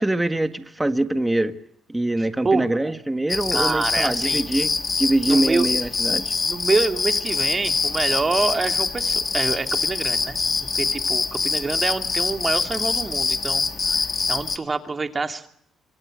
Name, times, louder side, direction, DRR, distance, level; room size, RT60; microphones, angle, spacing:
voice 1, 0.0-1.5 1.9-6.3, right 1 dB, 10° right, 1.8 m, -23 dB
voice 2, 2.4-2.9 3.5-4.5 5.3-5.7 6.5-10.4 10.7-13.6 13.9-15.5, right 3 dB, 30° right, 2.8 m, -26 dB
sound 1, 3.3-14.6, left 4 dB, 35° left, 1.9 m, -24 dB
26.5 x 26.0 x 6.4 m
cardioid pair, 90°, 0 cm